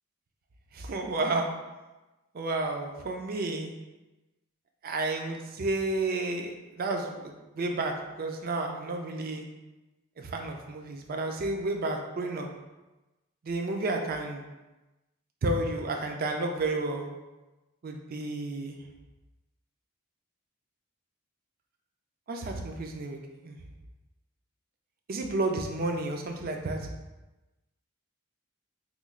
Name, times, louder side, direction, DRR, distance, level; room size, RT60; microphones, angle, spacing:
voice 1, 0.7-1.5 2.3-3.7 4.8-9.4 10.2-12.5 13.4-14.4 15.4-17.1 17.8-18.7 22.3-23.6 25.1-26.8, right 2 dB, 45° right, 3 dB, 0.4 m, -31 dB
3.1 x 2.3 x 3.6 m, 1.1 s
head